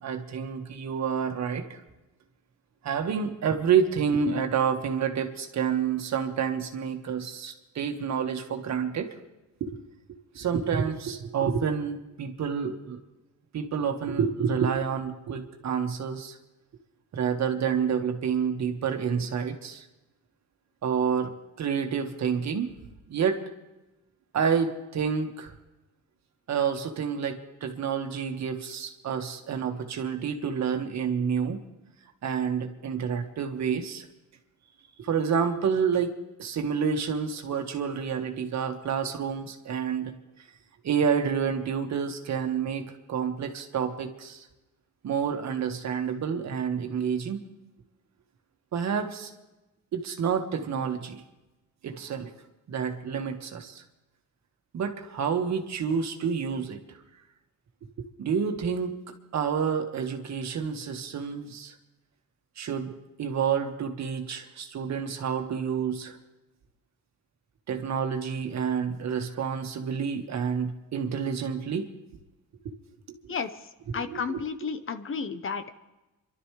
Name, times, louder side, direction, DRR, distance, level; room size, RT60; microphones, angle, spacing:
voice 1, 0.0-1.8 2.8-9.1 9.6-9.8 10.3-13.0 13.5-16.4 17.1-19.8 20.8-22.7 23.1-23.4 24.3-25.5 26.5-31.6 32.2-34.1 35.0-40.1 40.8-44.5 45.0-47.4 48.7-49.3 49.9-51.2 51.8-52.3 52.7-53.8 54.7-57.0 58.0-61.7 62.6-66.2 67.7-71.9 72.6-72.7 73.1-73.4 73.9-74.4, right 7 dB, 65° right, 4 dB, 1.7 m, -29 dB
voice 2, 73.3-73.7 73.9-75.7, left 5 dB, 45° left, 10 dB, 1.1 m, -32 dB
28.0 x 12.0 x 3.3 m, 1.0 s
cardioid pair, 90°, 30 cm